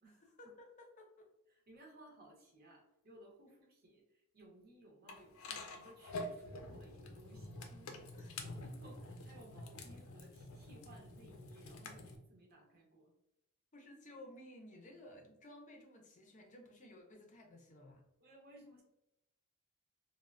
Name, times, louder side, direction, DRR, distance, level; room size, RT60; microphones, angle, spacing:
voice 1, 0.0-1.3 8.1-8.3 13.7-18.0, left 1 dB, 35° left, 2 dB, 0.5 m, -56 dB
voice 2, 1.5-8.1 8.4-13.1 18.2-18.8, right 1 dB, 45° right, 0 dB, 0.8 m, -60 dB
sound 1, 5.1-12.2, left 2 dB, 90° left, 0.5 m, -48 dB
3.1 x 2.1 x 2.4 m, 0.86 s
head